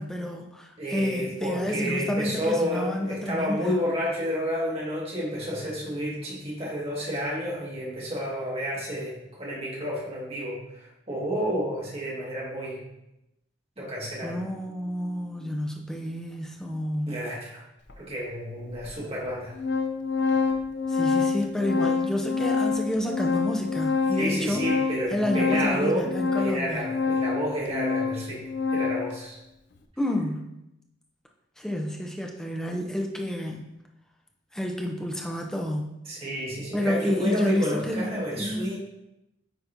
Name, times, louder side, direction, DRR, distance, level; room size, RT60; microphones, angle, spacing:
voice 1, 0.0-3.8 14.2-17.2 20.9-24.6 25.1-26.9 30.0-30.5 31.6-33.7 34.5-35.9 36.7-38.7, left 1 dB, 5° left, 1 dB, 0.6 m, -29 dB
voice 2, 0.8-12.8 13.8-14.4 17.1-17.6 18.0-19.6 24.2-28.4 28.7-29.4 36.1-38.8, equal, 30° right, -6 dB, 1.8 m, -30 dB
Organ, 17.9-18.0 18.8-18.9 19.3-29.1, left 4 dB, 60° left, 0.5 m, -27 dB
9.0 x 4.1 x 2.6 m, 0.87 s
head